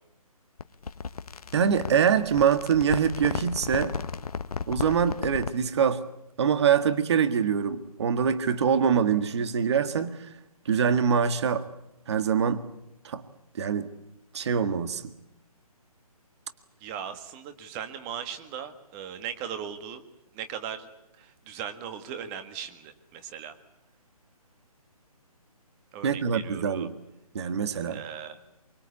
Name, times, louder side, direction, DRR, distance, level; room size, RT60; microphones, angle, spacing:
sound 1, 0.6-5.7, left 5 dB, 70° left, 1.2 m, -34 dB
voice 1, 1.5-4.0 4.7-6.0 6.4-10.3 10.6-11.7 12.1-12.7 13.0-13.2 13.5-13.9 14.3-15.1 26.0-27.0 27.3-28.0, right 7 dB, 45° right, 11 dB, 1.7 m, -24 dB
voice 2, 16.8-20.0 20.3-20.9 21.2-23.5 25.9-26.9 27.9-28.4, right 8 dB, 20° right, 9 dB, 1.8 m, -38 dB
24.5 x 24.0 x 8.5 m, 0.83 s
hypercardioid pair, 155°, 19 cm